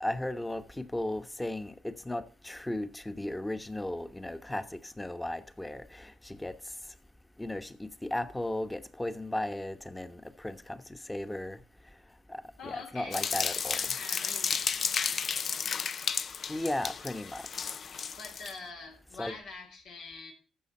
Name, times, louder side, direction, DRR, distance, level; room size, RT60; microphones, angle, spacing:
voice 1, 0.0-6.7 7.4-11.6 12.3-13.8 16.5-17.7 19.2-19.3, left 1 dB, 10° left, 1.1 m, -36 dB
voice 2, 12.6-13.2 13.7-14.9 18.2-20.3, left 4 dB, 85° left, 3.3 m, -44 dB
sound 1, 13.1-18.5, left 6 dB, 55° left, 0.5 m, -33 dB
14.5 x 6.3 x 4.3 m
supercardioid pair, 70°, 0 cm